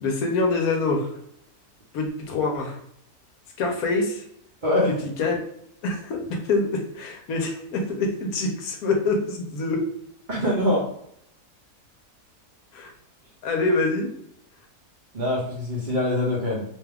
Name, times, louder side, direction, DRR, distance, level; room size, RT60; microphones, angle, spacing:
voice 1, 0.0-1.1 1.9-2.8 3.6-4.2 5.0-5.4 5.8-9.9 12.7-12.9 13.4-14.1, left 3 dB, 75° left, 3 dB, 1.1 m, -25 dB
voice 2, 4.6-4.9 10.3-10.9 15.1-16.6, left 1 dB, 45° right, -6 dB, 0.7 m, -23 dB
2.9 x 2.3 x 3.3 m, 0.70 s
omnidirectional pair, 1.6 m